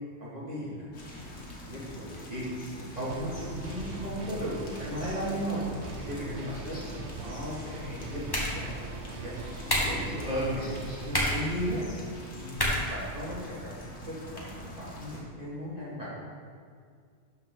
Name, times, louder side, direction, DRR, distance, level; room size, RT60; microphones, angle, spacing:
voice 1, 0.2-5.6 6.0-6.8 7.1-8.2 8.5-10.7 11.0-11.8 12.3-14.5 14.8-16.1, equal, 30° right, -8 dB, 2.2 m, -36 dB
sound 1, 0.9-15.2, left 1 dB, 70° left, 1.7 m, -45 dB
sound 2, 3.1-11.8, right 2 dB, 60° right, 0.9 m, -41 dB
sound 3, 7.8-13.8, equal, 20° left, 1.3 m, -33 dB
12.0 x 4.8 x 3.8 m, 2.1 s
omnidirectional pair, 1.3 m